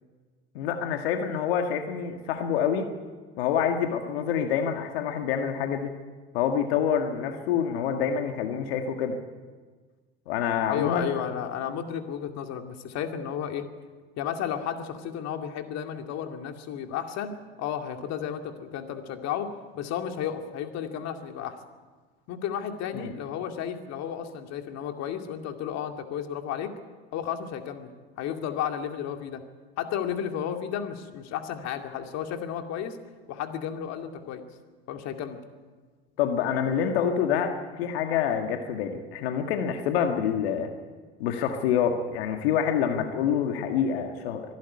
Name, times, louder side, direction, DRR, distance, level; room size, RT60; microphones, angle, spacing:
voice 1, 0.6-2.9 3.4-5.9 6.3-9.2 10.3-11.1 22.9-23.1 36.2-40.7 41.2-44.5, left 8 dB, 80° left, 5 dB, 1.8 m, -27 dB
voice 2, 10.7-13.7 14.2-21.6 22.3-26.7 27.1-29.4 29.8-33.0 33.3-34.4 34.9-35.4, left 9 dB, 60° left, 6 dB, 2.3 m, -33 dB
24.0 x 11.5 x 9.7 m, 1.4 s
hypercardioid pair, 80°, 30 cm